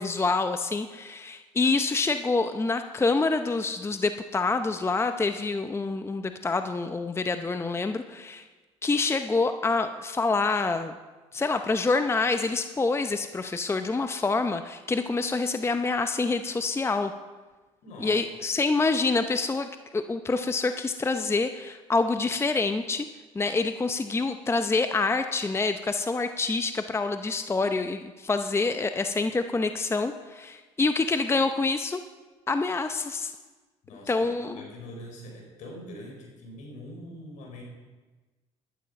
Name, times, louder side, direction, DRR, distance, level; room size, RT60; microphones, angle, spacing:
voice 1, 0.0-8.4 8.8-10.9 11.3-17.1 18.0-23.1 23.3-32.0 32.5-33.3 34.1-34.7, left 3 dB, 20° left, 9 dB, 0.7 m, -27 dB
voice 2, 17.8-18.2 33.8-37.6, left 1 dB, 70° left, 1 dB, 4.3 m, -43 dB
11.5 x 11.5 x 5.2 m, 1.3 s
supercardioid pair, 75°, 13 cm